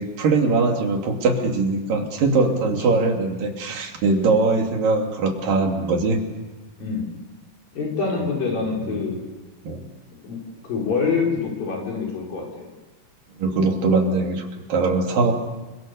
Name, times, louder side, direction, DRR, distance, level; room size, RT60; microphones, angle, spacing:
voice 1, 0.0-6.2 8.9-9.0 9.6-9.9 13.4-15.4, right 3 dB, 75° right, 3 dB, 4.4 m, -21 dB
voice 2, 6.8-7.1 7.7-9.2 10.2-10.4 10.6-12.7, left 4 dB, 75° left, -1 dB, 6.5 m, -25 dB
28.0 x 24.0 x 6.9 m, 1.2 s
omnidirectional pair, 4.0 m